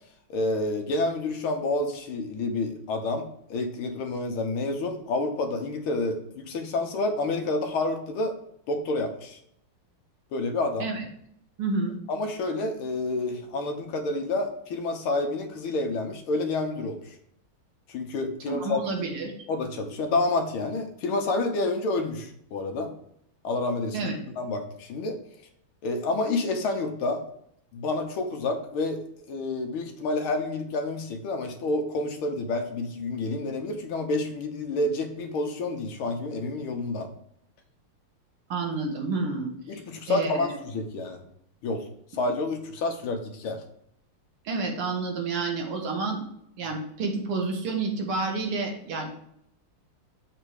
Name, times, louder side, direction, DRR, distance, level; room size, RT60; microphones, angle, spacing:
voice 1, 0.3-8.3 8.7-9.4 10.3-10.9 12.1-17.2 17.9-18.8 19.5-22.9 23.4-24.1 24.4-25.2 25.8-27.2 27.7-29.0 29.3-37.1 39.7-41.2 41.6-43.6, left 2 dB, 75° left, 4 dB, 1.8 m, -29 dB
voice 2, 11.6-12.0 18.5-19.3 23.9-24.2 38.5-39.5 40.1-40.5 44.5-46.2 46.6-49.1, right 3 dB, 85° right, 2 dB, 2.3 m, -29 dB
7.3 x 3.4 x 6.3 m, 0.72 s
omnidirectional pair, 2.4 m